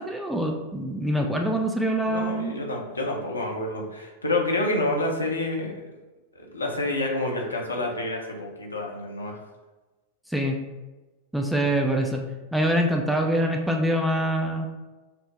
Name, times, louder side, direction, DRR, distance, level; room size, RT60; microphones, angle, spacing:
voice 1, 0.0-2.6 10.3-10.6 11.3-12.2 12.5-14.7, right 1 dB, ahead, 1 dB, 0.4 m, -25 dB
voice 2, 2.1-5.7 6.4-9.4 11.6-11.7, left 2 dB, 80° left, 0 dB, 0.8 m, -28 dB
5.8 x 2.1 x 3.3 m, 1.2 s
figure-of-eight pair, 90°, 0 cm